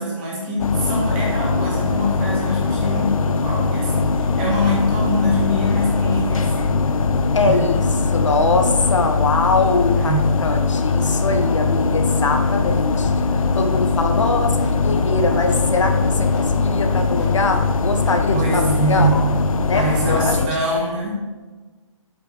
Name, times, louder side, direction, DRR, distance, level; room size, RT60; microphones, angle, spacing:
voice 1, 0.0-6.8 7.4-7.7 9.9-10.3 18.3-19.4 19.7-21.1, equal, 15° right, -4 dB, 2.0 m, -24 dB
sound 1, 0.6-20.5, left 4 dB, 85° left, 0.6 m, -21 dB
sound 2, 0.6-20.4, equal, ahead, 0.4 m, -29 dB
voice 2, 7.3-7.9 8.1-10.1 10.4-13.1 13.5-19.1 19.7-20.5, left 3 dB, 65° left, 5 dB, 1.3 m, -22 dB
8.5 x 7.7 x 4.9 m, 1.3 s
hypercardioid pair, 175°, 17 cm